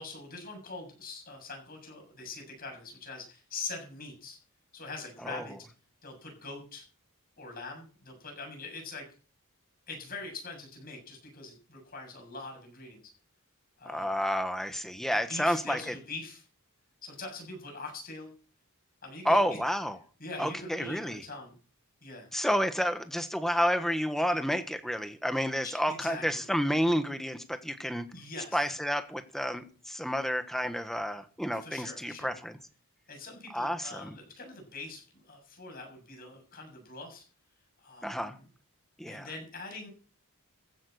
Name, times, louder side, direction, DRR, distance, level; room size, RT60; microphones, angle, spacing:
voice 1, 0.0-4.4 4.7-5.5 6.0-6.8 7.4-9.1 9.9-13.0 13.8-14.2 15.1-16.4 17.0-18.3 19.0-19.6 20.2-21.5 22.0-22.3 25.6-26.5 28.1-28.7 31.6-32.4 33.1-37.2 37.8-38.5 39.1-39.9, left 3 dB, 40° left, 7.4 m, -43 dB
voice 2, 13.8-15.9 19.2-20.0 20.4-21.2 22.3-28.1 28.5-32.6 33.5-34.2 38.0-38.3 39.0-39.3, equal, ahead, 1.3 m, -30 dB
15.0 x 8.8 x 6.7 m
head